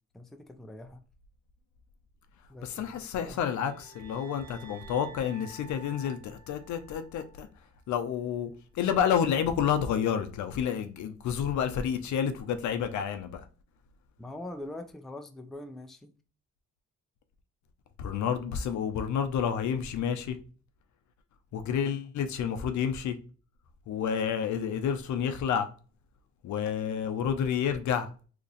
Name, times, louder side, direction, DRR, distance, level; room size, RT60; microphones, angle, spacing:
voice 1, 0.1-1.0 2.5-3.4 14.2-16.1 21.8-22.0, left 1 dB, ahead, 0.4 m, -43 dB
voice 2, 2.6-7.5 7.9-13.4 18.0-20.4 21.5-23.2 23.9-25.7 26.4-28.1, left 8 dB, 70° left, 0.6 m, -29 dB
sound 1, 3.2-7.5, right 2 dB, 60° right, 0.7 m, -52 dB
2.9 x 2.5 x 3.9 m
cardioid pair, 90°, 30 cm